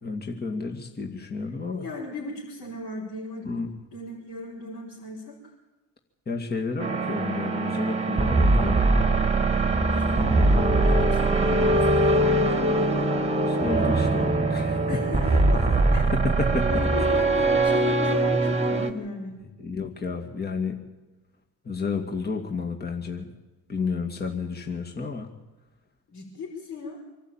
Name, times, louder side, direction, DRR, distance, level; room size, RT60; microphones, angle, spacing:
voice 1, 0.0-1.9 3.4-3.7 6.3-8.8 10.0-10.6 11.6-11.7 13.5-15.0 16.1-16.7 17.0-17.2 19.6-20.8 21.6-23.3 23.7-25.3, left 4 dB, 25° left, 2 dB, 2.3 m, -31 dB
voice 2, 1.7-5.4 9.9-13.1 14.9-16.0 16.7-19.4 26.1-27.0, left 2 dB, 55° left, -4 dB, 5.5 m, -37 dB
sound 1, 6.8-18.9, right 2 dB, 15° right, 1.8 m, -22 dB
25.0 x 12.0 x 9.0 m, 1.2 s
supercardioid pair, 75°, 40 cm